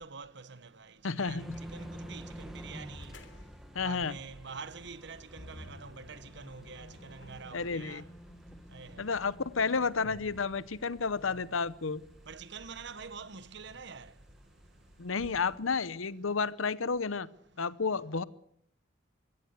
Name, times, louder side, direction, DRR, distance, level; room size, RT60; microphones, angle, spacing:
voice 1, 0.0-3.2 3.8-8.0 8.7-9.1 11.3-11.4 12.3-14.1, right 5 dB, 60° right, 1.1 m, -46 dB
sound 1, 0.6-0.7 1.0-3.6 4.0-4.2 4.5-8.1, left 3 dB, 65° left, 3.2 m, -59 dB
voice 2, 1.0-1.6 3.7-4.2 7.5-8.0 9.0-12.0 15.0-17.3 17.6-18.2, left 5 dB, 90° left, 0.9 m, -31 dB
sound 2, 1.4-15.8, equal, ahead, 1.5 m, -50 dB
sound 3, 5.4-11.3, left 1 dB, 40° left, 1.3 m, -53 dB
23.0 x 16.5 x 8.1 m
head